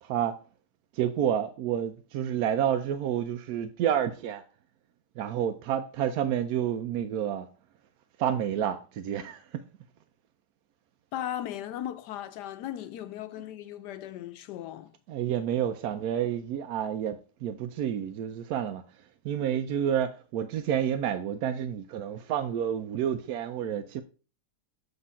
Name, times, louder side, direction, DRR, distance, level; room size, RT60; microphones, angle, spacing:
voice 1, 0.0-0.4 0.9-4.4 5.2-7.5 8.2-9.6 15.1-18.8 19.2-24.0, right 9 dB, 70° right, 1.0 m, -29 dB
voice 2, 11.1-14.9, left 12 dB, 80° left, 1.2 m, -37 dB
8.1 x 3.0 x 5.5 m
omnidirectional pair, 1.8 m